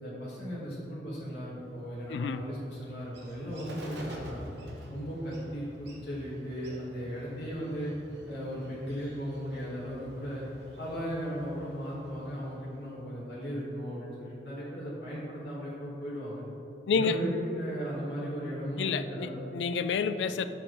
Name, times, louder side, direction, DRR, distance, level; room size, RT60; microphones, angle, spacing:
voice 1, 0.0-4.4 4.9-7.9 8.3-10.4 10.8-16.4 16.9-19.4, equal, 70° left, -8 dB, 1.5 m, -36 dB
Bird, 1.6-13.1, equal, 75° right, 0.9 m, -49 dB
voice 2, 2.1-2.4 16.9-17.2 18.8-20.5, left 5 dB, 90° left, 11 dB, 0.3 m, -29 dB
6.8 x 5.8 x 3.8 m, 2.9 s
head